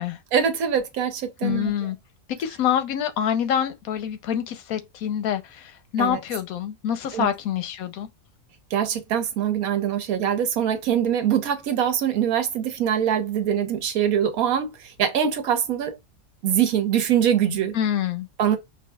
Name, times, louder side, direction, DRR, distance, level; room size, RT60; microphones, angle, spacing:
voice 1, 0.3-1.7 6.0-6.2 7.1-7.3 8.7-16.0 16.4-17.7 18.4-18.6, right 9 dB, 85° right, 1.2 m, -23 dB
voice 2, 1.4-2.0 2.4-8.1 17.7-18.3, left 9 dB, 85° left, 1.1 m, -26 dB
5.3 x 2.6 x 2.2 m
omnidirectional pair, 1.5 m